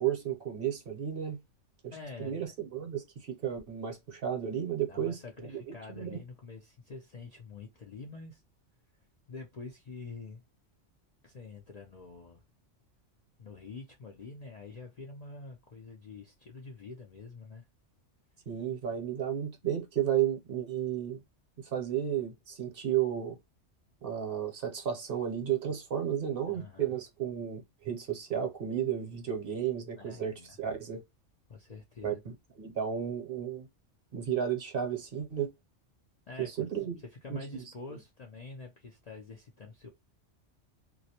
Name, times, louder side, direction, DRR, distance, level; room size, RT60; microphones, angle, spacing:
voice 1, 0.0-1.4 1.8-6.2 18.5-21.2 21.6-23.4 24.0-31.0 32.0-33.7 34.1-35.5 36.4-37.0 37.3-37.6 37.9-38.0, right 9 dB, 55° right, 0.9 m, -33 dB
voice 2, 1.9-2.5 4.9-8.4 9.3-10.4 11.2-12.4 13.4-17.7 26.5-27.0 29.9-30.6 31.5-32.2 36.3-36.7 37.1-39.9, left 4 dB, 50° left, 0.5 m, -46 dB
2.3 x 2.1 x 2.7 m
omnidirectional pair, 1.2 m